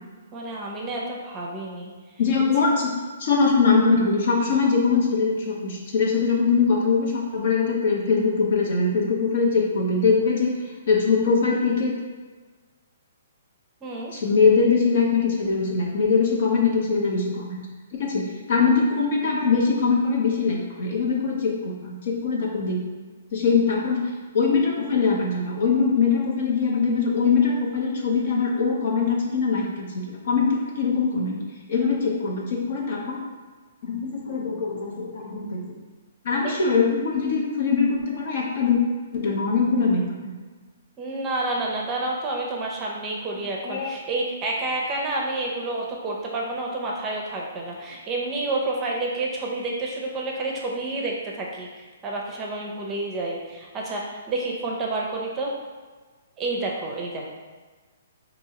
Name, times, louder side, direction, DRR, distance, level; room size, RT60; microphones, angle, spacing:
voice 1, 0.3-1.9 13.8-14.1 36.4-36.5 41.0-55.5 56.4-57.3, right 2 dB, 20° right, -1 dB, 0.6 m, -29 dB
voice 2, 2.2-2.9 3.2-10.6 10.9-11.9 14.1-17.6 17.9-22.8 23.3-31.4 31.7-33.2 33.8-35.6 36.2-38.8 39.1-40.3 43.6-43.9, left 4 dB, 55° left, -2 dB, 0.9 m, -22 dB
4.4 x 2.7 x 2.9 m, 1.4 s
hypercardioid pair, 150°, 0 cm